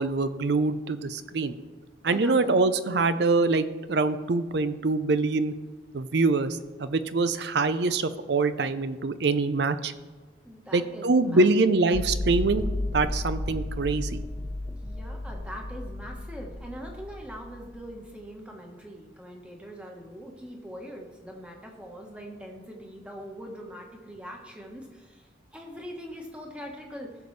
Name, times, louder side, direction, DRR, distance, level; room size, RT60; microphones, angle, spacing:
voice 1, 0.0-1.6 2.0-5.5 5.9-9.9 10.7-12.7 12.9-14.2, right 3 dB, 60° right, 12 dB, 0.5 m, -24 dB
voice 2, 2.1-2.6 3.2-3.3 10.4-11.8 14.8-25.2 25.5-27.1, equal, 5° right, 0 dB, 1.2 m, -42 dB
sound 1, 11.9-17.9, left 1 dB, 30° left, 0.8 m, -33 dB
16.5 x 7.0 x 3.3 m, 1.3 s
head